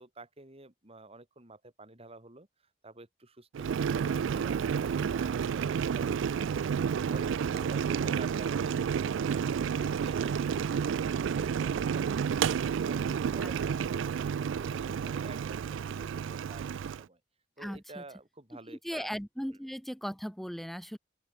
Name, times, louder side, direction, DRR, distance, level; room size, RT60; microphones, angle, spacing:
voice 1, 0.0-2.5 2.8-17.2 17.6-19.1, right 2 dB, 30° right, 4.1 m, -50 dB
Boiling, 3.5-17.0, right 7 dB, 80° right, 0.3 m, -30 dB
voice 2, 17.6-18.0 18.8-21.0, equal, ahead, 1.7 m, -37 dB
open air
head